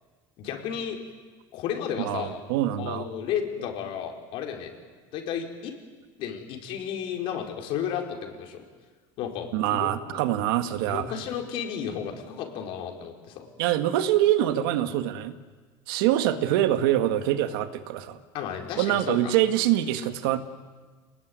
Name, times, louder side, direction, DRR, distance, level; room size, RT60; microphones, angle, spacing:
voice 1, 0.4-1.0 1.5-2.4 2.8-4.7 5.1-5.7 6.2-8.6 9.2-10.2 10.8-13.5 18.3-19.3, left 8 dB, 50° left, 3 dB, 4.5 m, -33 dB
voice 2, 2.0-3.1 9.5-11.1 13.6-15.4 15.9-18.2 18.8-20.4, right 12 dB, 90° right, 9 dB, 1.9 m, -24 dB
29.0 x 20.0 x 9.6 m, 1.4 s
cardioid pair, 165°, 11 cm